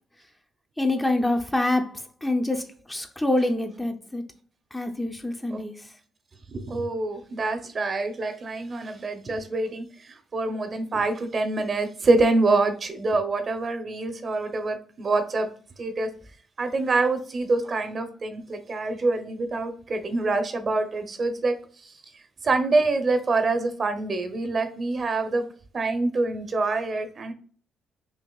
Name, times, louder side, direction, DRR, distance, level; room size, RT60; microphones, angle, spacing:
voice 1, 0.8-2.6 2.9-4.2 4.7-5.7, left 2 dB, 10° left, 0.5 m, -26 dB
voice 2, 6.5-15.5 15.8-16.1 16.6-21.5 22.4-25.4 25.7-27.3, right 3 dB, 40° right, 0.7 m, -25 dB
5.4 x 2.8 x 2.3 m
cardioid pair, 90°, 0 cm